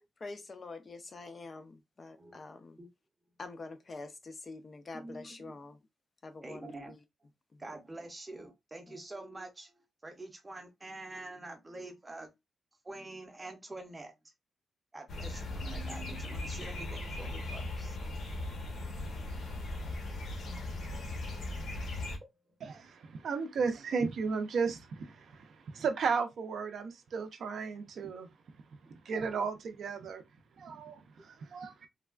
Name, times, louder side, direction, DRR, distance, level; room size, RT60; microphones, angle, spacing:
voice 1, 0.2-2.8 3.4-5.8 6.2-7.0 7.5-7.7 8.9-9.0, left 3 dB, 30° left, 0.4 m, -46 dB
voice 2, 4.9-5.5 6.4-7.0 7.6-9.7 10.0-12.3 12.8-14.1 14.9-18.0 20.1-20.9 22.2-22.5, right 2 dB, 15° right, 0.6 m, -46 dB
sound 1, 15.1-22.2, left 2 dB, 60° left, 0.8 m, -38 dB
voice 3, 22.6-28.3 29.1-30.2 30.6-31.9, right 5 dB, 60° right, 0.4 m, -34 dB
3.2 x 2.3 x 2.2 m
wide cardioid pair, 175°, 0 cm